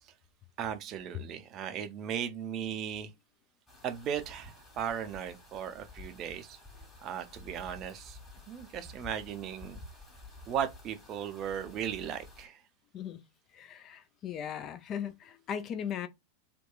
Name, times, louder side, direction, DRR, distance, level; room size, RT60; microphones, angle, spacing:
voice 1, 0.6-3.1 3.8-6.6 7.0-8.2 8.5-9.8 10.5-12.6, right 9 dB, 35° right, 0.5 m, -37 dB
sound 1, 3.7-12.5, left 2 dB, 10° left, 1.5 m, -51 dB
voice 2, 13.5-16.1, left 8 dB, 30° left, 0.3 m, -38 dB
2.8 x 2.2 x 2.3 m
figure-of-eight pair, 90°, 0 cm